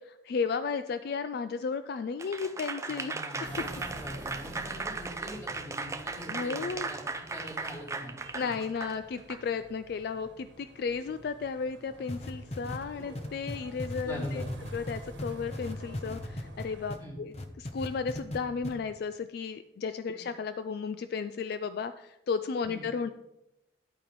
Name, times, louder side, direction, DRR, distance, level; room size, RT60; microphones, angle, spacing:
voice 1, 0.0-3.6 6.3-6.9 8.3-14.4 14.7-23.1, left 5 dB, 55° left, 11 dB, 0.3 m, -34 dB
Applause / Crowd, 2.2-9.4, right 3 dB, 15° right, 0.4 m, -37 dB
voice 2, 2.9-7.0 7.3-8.5 12.9-13.2 14.0-14.5 17.0-17.2 20.1-20.2 22.7-22.9, equal, 15° left, -5 dB, 3.1 m, -43 dB
sound 1, 3.4-16.9, right 1 dB, 75° right, 1.3 m, -49 dB
sound 2, 12.1-17.0 17.3-18.4 18.6-18.7, left 1 dB, 35° left, 0.8 m, -37 dB
10.5 x 8.8 x 3.1 m, 0.89 s
head